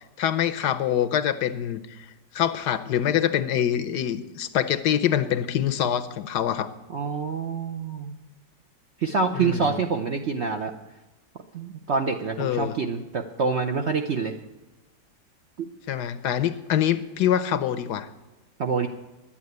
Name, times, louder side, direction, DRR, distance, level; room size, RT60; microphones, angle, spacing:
voice 1, 0.0-1.8 2.3-6.7 9.3-9.8 12.4-12.8 15.9-18.1, left 10 dB, 70° left, 13 dB, 1.2 m, -25 dB
voice 2, 6.9-8.1 9.0-10.7 11.5-14.3 15.6-15.7 18.6-18.9, right 5 dB, 60° right, 4 dB, 0.7 m, -26 dB
11.0 x 8.7 x 9.4 m, 1.1 s
omnidirectional pair, 2.0 m